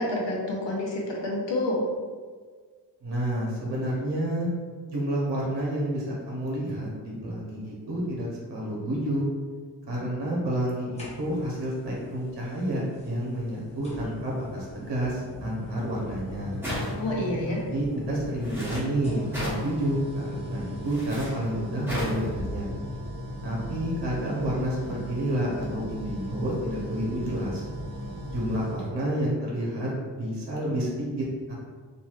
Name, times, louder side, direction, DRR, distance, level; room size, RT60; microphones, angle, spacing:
voice 1, 0.0-1.8 16.9-17.6, left 1 dB, 85° left, -3 dB, 0.8 m, -28 dB
voice 2, 3.0-4.5 4.9-9.2 9.9-16.6 17.7-22.7 23.4-27.7 28.3-29.9 30.2-31.5, right 1 dB, 70° right, -4 dB, 0.8 m, -29 dB
sound 1, 11.0-11.6 13.0-13.1 13.8-28.8, left 1 dB, 15° left, 0.5 m, -37 dB
sound 2, 16.6-17.2 18.4-18.8 19.3-19.7 20.8-21.3 21.8-22.2, equal, 5° right, 0.9 m, -33 dB
3.0 x 2.5 x 2.3 m, 1.5 s
wide cardioid pair, 165°, 42 cm